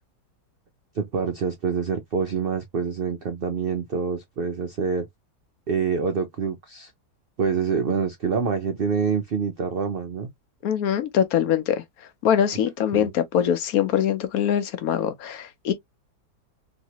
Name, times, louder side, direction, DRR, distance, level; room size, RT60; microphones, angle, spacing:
voice 1, 0.9-5.1 5.7-6.9 7.4-10.3 12.9-13.1, right 6 dB, 85° right, 0.5 m, -26 dB
voice 2, 10.6-11.8 12.2-15.7, left 9 dB, 65° left, 1.0 m, -23 dB
3.1 x 2.7 x 2.8 m
omnidirectional pair, 1.8 m